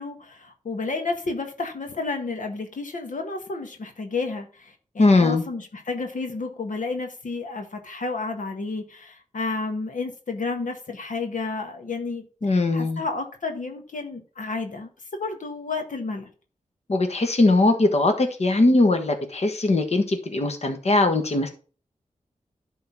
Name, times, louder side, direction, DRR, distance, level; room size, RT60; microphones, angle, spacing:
voice 1, 0.0-16.3, left 3 dB, 80° left, 1.5 m, -31 dB
voice 2, 5.0-5.4 12.4-13.0 16.9-21.5, left 2 dB, 55° left, 1.5 m, -20 dB
11.5 x 3.9 x 5.9 m
wide cardioid pair, 70°, 13 cm